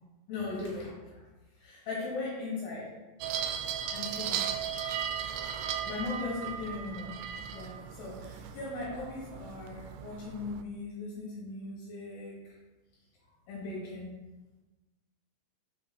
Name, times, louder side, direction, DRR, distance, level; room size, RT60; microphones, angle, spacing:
voice 1, 0.3-1.2 1.6-2.9 3.9-4.5 5.8-7.2 7.5-12.3 13.5-14.1, left 3 dB, 65° left, -5 dB, 3.1 m, -38 dB
sound 1, 3.2-10.6, right 8 dB, 85° right, 3.0 m, -37 dB
6.7 x 5.2 x 4.2 m, 1.1 s
omnidirectional pair, 5.7 m